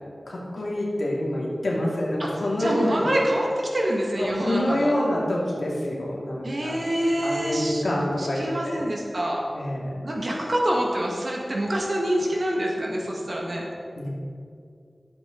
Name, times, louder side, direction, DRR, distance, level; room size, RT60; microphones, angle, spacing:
voice 1, 0.3-3.1 4.2-6.7 7.0-8.8 9.5-9.9 14.0-14.1, left 1 dB, 80° left, -4 dB, 2.2 m, -27 dB
voice 2, 2.6-3.5 3.7-4.9 6.4-7.8 8.2-9.4 10.0-13.6, right 1 dB, 60° right, -2 dB, 1.8 m, -26 dB
11.0 x 7.6 x 3.9 m, 2.4 s
wide cardioid pair, 45°, 0 cm